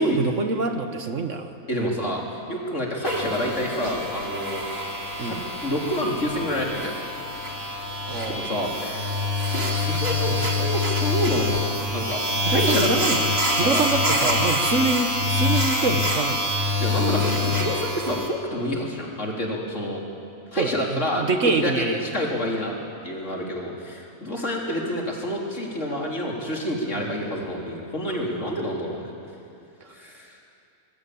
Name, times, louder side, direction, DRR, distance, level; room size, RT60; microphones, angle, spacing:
voice 1, 0.0-1.6 2.0-2.1 5.2-5.4 8.1-8.4 10.6-10.7 12.5-16.5 20.5-22.1 27.0-27.1, right 3 dB, 60° right, 7 dB, 1.6 m, -26 dB
voice 2, 1.7-4.6 5.2-5.4 5.6-7.0 8.3-12.9 13.6-13.8 16.8-20.0 20.5-22.7 23.0-29.1 29.9-30.4, equal, 55° left, -1 dB, 4.0 m, -28 dB
sound 1, 3.0-18.3, left 1 dB, 45° right, 2.8 m, -25 dB
25.0 x 20.5 x 8.6 m, 2.6 s
omnidirectional pair, 1.5 m